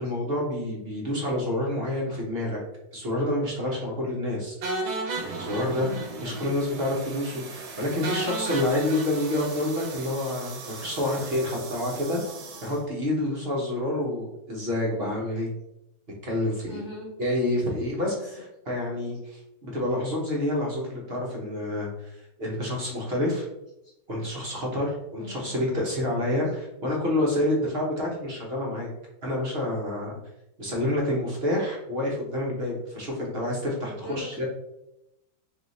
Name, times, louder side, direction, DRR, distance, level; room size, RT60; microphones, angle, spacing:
voice 1, 0.0-2.6 2.9-4.6 5.2-5.9 6.2-12.2 12.6-15.5 16.2-16.8 17.2-23.5 24.1-28.9 29.2-30.2 30.6-34.4, left 1 dB, 45° right, -3 dB, 0.8 m, -28 dB
sound 1, 4.6-6.5 6.8-6.9 7.3-7.4 8.0-10.3, right 2 dB, 90° right, 1.6 m, -34 dB
sound 2, 5.2-12.8, right 4 dB, 65° right, 1.3 m, -41 dB
voice 2, 5.8-6.6 16.7-17.1 18.1-18.4 23.8-23.9 25.1-25.5 33.8-34.4, left 3 dB, 60° left, -4 dB, 0.7 m, -40 dB
3.7 x 2.7 x 3.9 m, 0.88 s
omnidirectional pair, 2.1 m